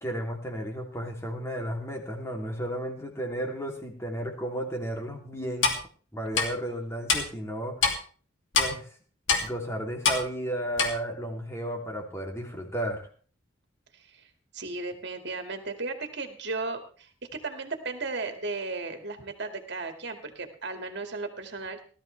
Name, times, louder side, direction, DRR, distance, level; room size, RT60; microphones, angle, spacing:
voice 1, 0.0-5.7 6.1-7.8 8.6-9.0 9.4-13.1, right 1 dB, 15° left, 2 dB, 3.1 m, -33 dB
Clock, 5.6-5.8 6.3-6.5 7.1-7.2 7.8-7.9 8.5-8.7 9.3-9.4 10.0-10.2 10.8-10.9, left 5 dB, 70° left, 2.8 m, -23 dB
voice 2, 13.9-21.8, right 3 dB, 60° right, 6 dB, 2.3 m, -35 dB
18.0 x 13.0 x 3.4 m, 0.41 s
head